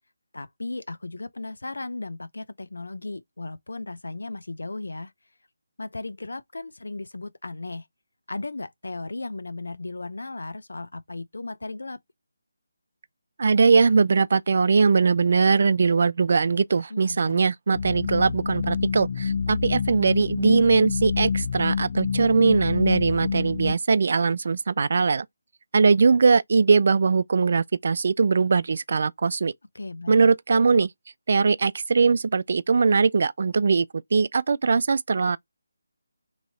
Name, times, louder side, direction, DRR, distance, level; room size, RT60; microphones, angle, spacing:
voice 1, 0.3-5.1 5.8-7.9 8.3-12.0 16.9-17.5 29.7-30.3, left 2 dB, 80° left, 0.6 m, -36 dB
voice 2, 13.4-25.3 25.7-29.5 30.1-30.9 31.3-33.9 34.1-35.4, right 5 dB, 50° right, 0.3 m, -21 dB
sound 1, 17.7-23.7, left 5 dB, 40° left, 0.4 m, -27 dB
3.1 x 2.8 x 4.1 m
figure-of-eight pair, 165°, 0 cm